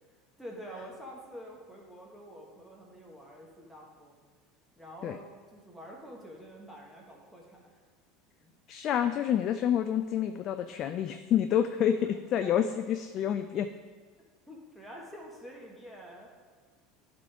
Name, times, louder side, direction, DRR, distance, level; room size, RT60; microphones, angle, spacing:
voice 1, 0.4-4.2 4.8-7.8 8.4-8.5 12.4-12.5 14.5-16.3, equal, ahead, -3 dB, 1.5 m, -47 dB
voice 2, 8.7-13.7, left 9 dB, 45° left, 9 dB, 0.3 m, -28 dB
11.5 x 3.8 x 4.8 m, 1.5 s
figure-of-eight pair, 75°, 0 cm